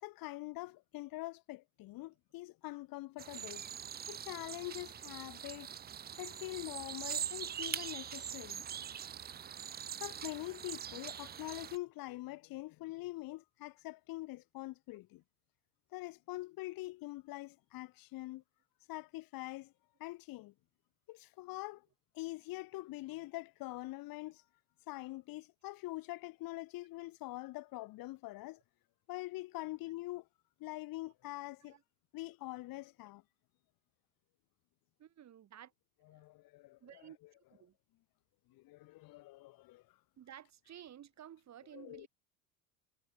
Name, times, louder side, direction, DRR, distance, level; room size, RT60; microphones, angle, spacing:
voice 1, 0.0-3.6 4.1-5.8 6.2-8.7 10.0-15.2 15.9-18.4 18.9-19.7 20.0-20.5 21.1-21.8 22.1-24.4 24.9-28.6 29.1-30.2 30.6-31.8 32.1-33.2 36.1-37.1 38.5-39.8 41.7-42.1, left 19 dB, 50° left, 2.8 m, -44 dB
sound 1, 3.2-11.8, right 9 dB, 20° right, 0.7 m, -43 dB
voice 2, 35.0-35.7 36.1-36.2 36.8-37.2 37.5-37.7 40.2-42.1, right 10 dB, 40° right, 5.1 m, -54 dB
hypercardioid pair, 75°, 43 cm